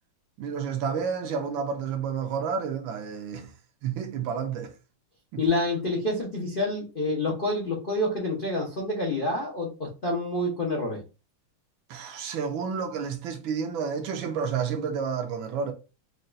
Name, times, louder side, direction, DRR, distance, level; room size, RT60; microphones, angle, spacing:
voice 1, 0.4-3.5 3.8-4.7 5.3-5.4 11.9-15.7, right 6 dB, 75° right, 1.2 m, -30 dB
voice 2, 5.4-11.0, left 2 dB, 80° left, 0.4 m, -28 dB
5.1 x 2.3 x 2.5 m
omnidirectional pair, 2.4 m